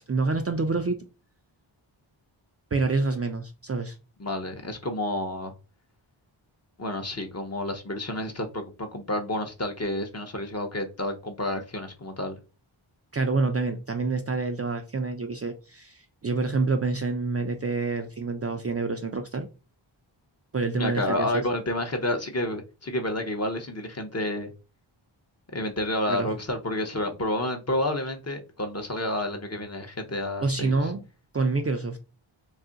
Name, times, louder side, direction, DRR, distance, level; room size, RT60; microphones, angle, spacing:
voice 1, 0.1-1.0 2.7-4.0 13.1-19.5 20.5-21.4 26.1-26.3 30.4-31.0 31.3-32.0, right 3 dB, 30° right, 0.4 m, -27 dB
voice 2, 4.2-5.5 6.8-12.4 20.8-24.5 25.5-30.9, left 1 dB, 30° left, 0.7 m, -30 dB
2.4 x 2.1 x 3.8 m
cardioid pair, 40°, 49 cm